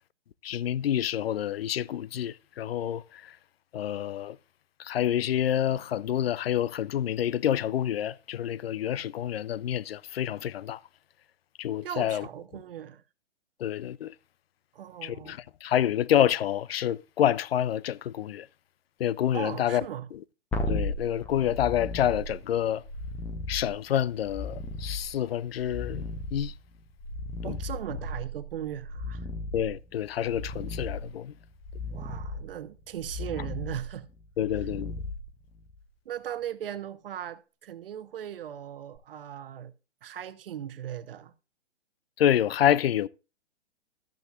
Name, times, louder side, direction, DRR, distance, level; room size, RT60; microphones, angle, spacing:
voice 1, 0.4-3.0 3.7-4.4 4.8-10.8 11.6-12.2 13.6-14.1 15.0-18.5 19.0-19.8 20.7-22.8 23.5-26.1 26.3-26.5 27.4-27.6 29.5-31.3 34.4-34.9 42.2-43.1, left 10 dB, 60° left, 0.5 m, -28 dB
voice 2, 11.8-13.0 14.7-15.4 19.3-20.1 27.4-29.3 31.9-34.0 34.6-34.7 36.0-39.7 40.0-41.3, right 10 dB, 55° right, 0.9 m, -38 dB
sound 1, 20.5-35.8 39.0-39.1, left 1 dB, 5° left, 0.7 m, -36 dB
13.0 x 8.0 x 2.4 m
hypercardioid pair, 135°, 34 cm